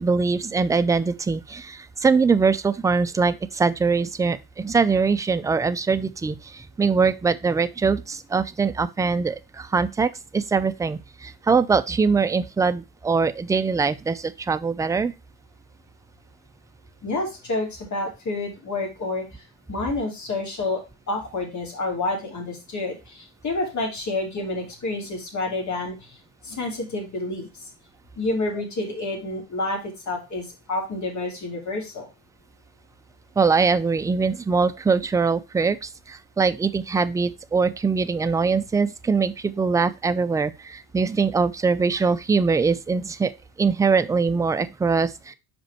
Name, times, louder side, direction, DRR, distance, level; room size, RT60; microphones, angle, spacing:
voice 1, 0.0-15.1 33.4-43.3 43.6-45.3, right 4 dB, 10° right, 0.4 m, -22 dB
voice 2, 17.0-19.2 19.7-20.8 21.1-26.2 26.4-27.5 28.2-32.1, left 2 dB, 40° left, 3.1 m, -29 dB
5.3 x 5.2 x 4.3 m
hypercardioid pair, 70°, 43 cm